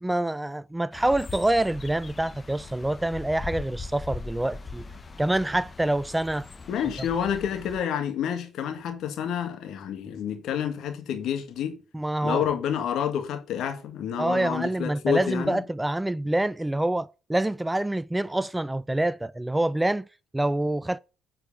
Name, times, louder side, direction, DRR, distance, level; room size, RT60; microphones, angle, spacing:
voice 1, 0.0-4.8 5.2-6.5 11.9-12.4 14.2-20.1 20.3-21.0, right 1 dB, 10° right, 0.4 m, -26 dB
sound 1, 0.9-7.8, left 3 dB, 30° left, 1.1 m, -40 dB
voice 2, 6.7-11.8 12.2-15.6, left 8 dB, 65° left, 1.9 m, -29 dB
8.5 x 4.8 x 7.1 m
hypercardioid pair, 55°, 0 cm